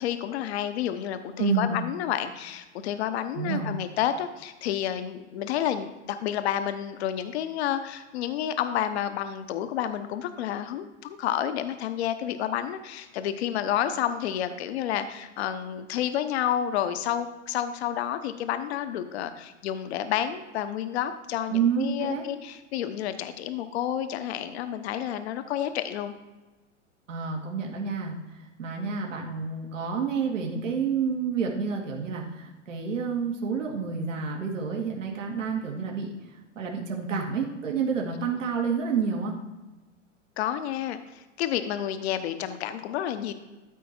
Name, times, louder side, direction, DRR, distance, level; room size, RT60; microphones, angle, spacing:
voice 1, 0.0-26.1 40.4-43.3, left 10 dB, 55° left, 10 dB, 0.9 m, -30 dB
voice 2, 1.4-1.8 3.3-3.7 21.5-22.2 27.1-39.4, right 5 dB, 75° right, 0 dB, 2.2 m, -29 dB
13.0 x 4.6 x 4.4 m, 1.1 s
hypercardioid pair, 110°, 38 cm